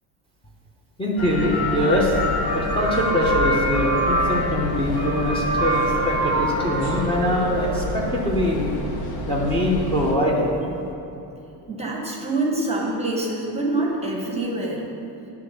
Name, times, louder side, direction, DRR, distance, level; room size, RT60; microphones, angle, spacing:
voice 1, 1.0-2.2 2.5-8.7 9.3-10.5, equal, 10° left, -4 dB, 1.0 m, -23 dB
sound 1, 1.2-10.2, equal, 60° left, 1.1 m, -25 dB
voice 2, 11.7-14.8, right 2 dB, 15° right, -2 dB, 1.2 m, -25 dB
9.5 x 3.6 x 6.6 m, 2.8 s
cardioid pair, 125°, 44 cm